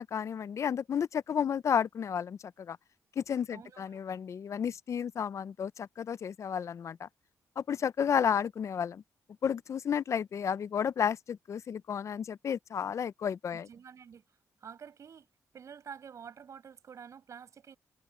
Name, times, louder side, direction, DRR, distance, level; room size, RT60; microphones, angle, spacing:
voice 1, 0.0-2.8 3.2-7.1 7.6-9.0 9.4-13.7, left 8 dB, 55° left, 0.5 m, -32 dB
voice 2, 3.5-4.0 13.5-15.3 15.5-17.8, right 7 dB, 60° right, 5.8 m, -49 dB
cardioid pair, 105°, 6 cm